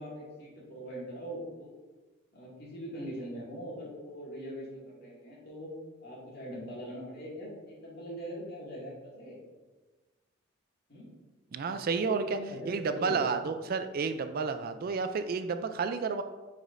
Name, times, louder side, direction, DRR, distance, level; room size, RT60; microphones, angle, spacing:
voice 1, 0.0-1.7 2.3-5.7 6.0-9.4 10.9-11.1 11.9-13.2, equal, 50° left, -5 dB, 2.1 m, -41 dB
voice 2, 11.5-12.4 12.7-16.2, right 5 dB, 45° right, 9 dB, 0.3 m, -31 dB
9.3 x 4.9 x 2.5 m, 1.3 s
head